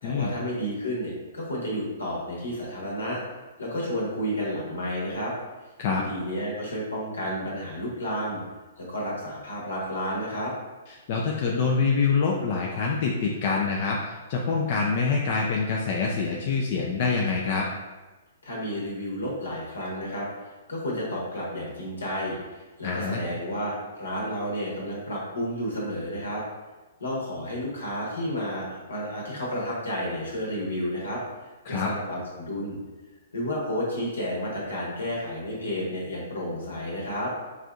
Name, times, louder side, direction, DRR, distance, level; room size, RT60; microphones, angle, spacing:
voice 1, 0.0-3.2 3.6-5.3 5.9-8.4 8.8-10.5 18.4-26.4 27.0-32.8 33.3-37.3, equal, 80° left, -4 dB, 1.2 m, -31 dB
voice 2, 10.9-17.7 22.8-23.2 31.7-31.9, left 4 dB, 50° left, -2 dB, 0.4 m, -26 dB
4.2 x 2.6 x 2.3 m, 1.2 s
hypercardioid pair, 120°, 0 cm